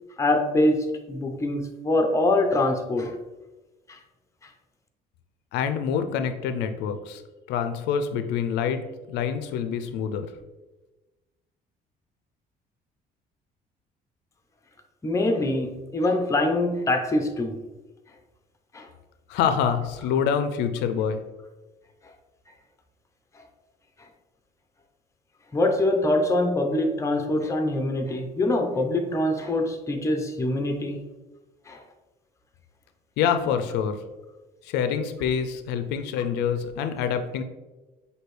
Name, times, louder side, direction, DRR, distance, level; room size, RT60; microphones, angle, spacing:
voice 1, 0.2-3.2 3.9-4.0 4.4-4.5 15.0-17.6 18.7-18.9 22.0-22.1 23.3-23.4 25.5-31.0 31.7-31.8, left 1 dB, 15° left, 4 dB, 0.6 m, -24 dB
voice 2, 5.5-7.2 7.5-8.8 9.1-10.3 19.3-21.2 33.2-34.0 34.6-37.4, left 7 dB, 90° left, 8 dB, 0.4 m, -26 dB
6.0 x 2.7 x 3.2 m, 1.1 s
cardioid pair, 110°, 17 cm